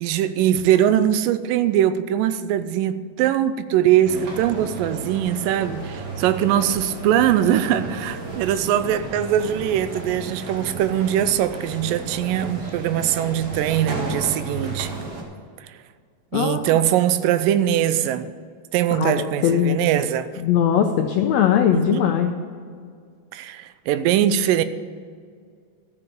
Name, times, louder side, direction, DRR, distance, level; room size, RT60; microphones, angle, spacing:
voice 1, 0.0-14.9 15.6-15.8 16.3-18.3 18.7-20.3 21.7-22.0 23.3-24.6, right 11 dB, 85° right, 2.3 m, -21 dB
sound 1, 4.0-15.2, right 3 dB, 45° right, 2.6 m, -33 dB
voice 2, 16.3-16.8 18.9-19.8 20.4-22.3, left 9 dB, 85° left, 1.5 m, -20 dB
13.5 x 7.0 x 6.7 m
omnidirectional pair, 3.9 m